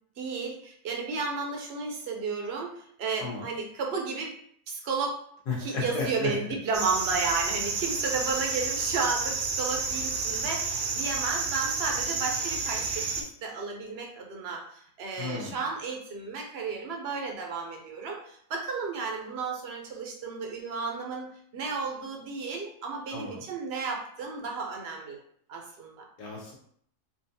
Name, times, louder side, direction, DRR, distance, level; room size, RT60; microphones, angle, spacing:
voice 1, 0.2-4.3 4.7-5.2 5.6-25.2 25.5-26.0, right 4 dB, 55° right, 1 dB, 0.7 m, -33 dB
voice 2, 5.5-6.3 15.2-15.6 23.1-23.4 26.2-26.5, left 4 dB, 85° left, -3 dB, 1.6 m, -33 dB
sound 1, 6.7-13.2, right 4 dB, 80° right, 1.2 m, -30 dB
4.8 x 2.3 x 2.7 m, 0.65 s
omnidirectional pair, 1.7 m